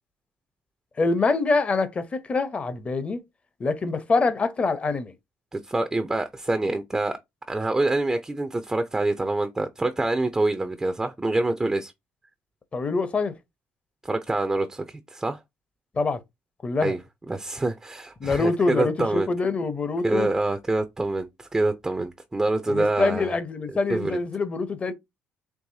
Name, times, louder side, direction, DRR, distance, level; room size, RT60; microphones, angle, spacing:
voice 1, 1.0-3.2 3.6-5.1 12.7-13.4 15.9-16.2 16.6-16.9 18.2-20.3 22.7-24.9, left 3 dB, 30° left, 0.8 m, -25 dB
voice 2, 5.5-7.2 7.5-11.9 14.0-15.4 16.8-17.0 17.3-19.3 20.0-23.3 23.9-24.2, right 2 dB, 15° right, 0.5 m, -26 dB
4.7 x 3.1 x 2.7 m
cardioid pair, 105°, 4 cm